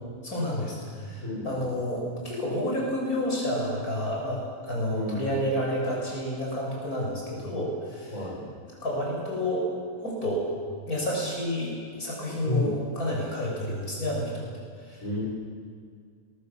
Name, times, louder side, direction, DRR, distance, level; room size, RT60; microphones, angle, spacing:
voice 1, 0.2-8.1 8.8-9.7 10.0-10.5 10.9-14.5 14.9-15.0, equal, 85° left, -3 dB, 7.3 m, -30 dB
voice 2, 1.2-1.7 4.9-5.4 8.1-8.4 12.4-12.7 15.0-15.2, left 1 dB, 65° left, -5 dB, 7.0 m, -31 dB
29.0 x 21.0 x 7.2 m, 2.1 s
omnidirectional pair, 1.5 m